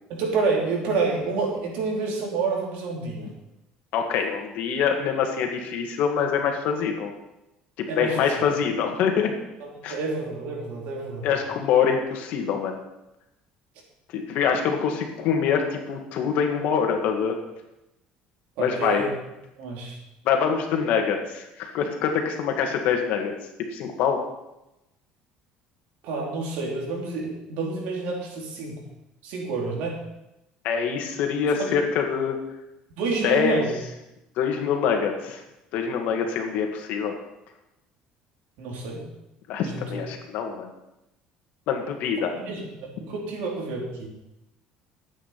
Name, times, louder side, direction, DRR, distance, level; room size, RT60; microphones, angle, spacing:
voice 1, 0.1-3.3 7.9-8.3 9.9-11.3 18.6-19.1 19.6-20.0 26.0-28.8 29.2-30.0 31.6-31.7 33.0-33.8 38.6-39.0 39.6-40.0 42.5-44.1, right 4 dB, 70° right, -2 dB, 4.1 m, -28 dB
voice 2, 3.9-7.1 7.8-9.3 9.8-10.0 11.2-12.8 14.1-17.4 18.6-19.0 20.2-24.2 30.6-32.4 33.2-33.6 34.4-35.4 35.7-37.2 39.5-40.7 41.7-42.4, left 7 dB, 65° left, 3 dB, 2.2 m, -25 dB
12.5 x 9.0 x 6.0 m, 0.91 s
cardioid pair, 150°, 3 cm